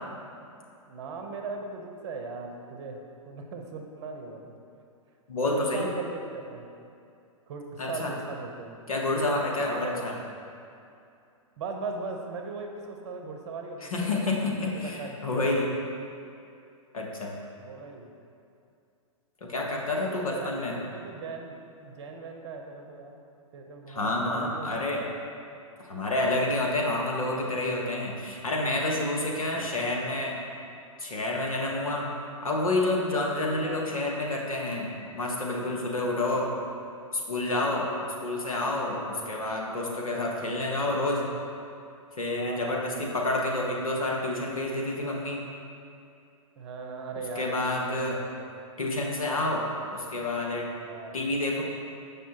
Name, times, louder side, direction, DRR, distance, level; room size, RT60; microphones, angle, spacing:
voice 1, 0.9-4.5 5.4-6.7 7.5-8.9 9.6-10.1 11.6-15.5 17.6-18.1 19.9-23.1 23.5-25.0 29.3-29.7 37.7-37.9 38.9-39.3 40.1-40.4 42.4-42.9 46.6-48.5 50.8-51.2, right 4 dB, 55° right, 3 dB, 0.8 m, -39 dB
voice 2, 5.3-5.9 7.8-8.1 8.9-10.1 13.9-15.7 16.9-17.4 19.4-20.8 23.9-25.1 25.8-30.4 31.0-32.1 32.4-36.5 37.1-37.9 38.2-41.3 42.2-45.4 47.3-48.2 48.8-50.7 51.1-51.6, left 2 dB, 80° left, -1 dB, 1.1 m, -29 dB
7.3 x 5.4 x 2.9 m, 2.5 s
figure-of-eight pair, 110°, 18 cm